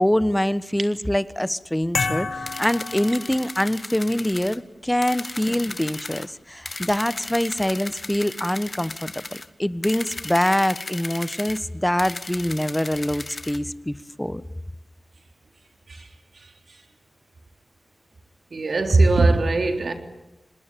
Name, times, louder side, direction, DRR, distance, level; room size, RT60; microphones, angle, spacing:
voice 1, 0.0-14.4, left 1 dB, 10° left, 15 dB, 1.3 m, -24 dB
sound 1, 1.9-3.9, left 4 dB, 90° left, 3.5 m, -29 dB
sound 2, 2.5-4.6 5.0-6.3 6.6-9.5 9.8-11.6 12.0-13.6, left 2 dB, 45° left, 1.8 m, -36 dB
voice 2, 18.5-19.9, right 3 dB, 70° right, 6 dB, 3.6 m, -20 dB
26.5 x 20.5 x 9.2 m, 0.97 s
cardioid pair, 50°, 0 cm